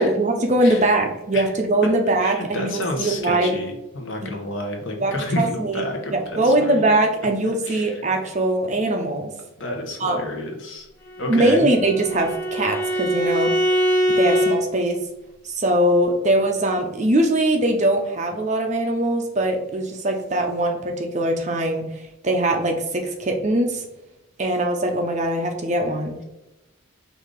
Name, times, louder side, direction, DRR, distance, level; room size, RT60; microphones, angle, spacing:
voice 1, 0.0-3.5 4.2-4.3 5.0-5.8 6.1-9.3 10.0-10.3 11.3-13.5 14.1-15.0 15.4-23.8 24.4-26.2, right 1 dB, 35° right, 3 dB, 0.6 m, -21 dB
voice 2, 2.2-6.8 7.6-8.0 9.6-10.9 11.2-11.7, left 2 dB, 65° left, 2 dB, 0.9 m, -29 dB
Bowed string instrument, 11.1-14.6, equal, 10° left, 0.8 m, -22 dB
5.0 x 2.7 x 3.7 m, 0.93 s
head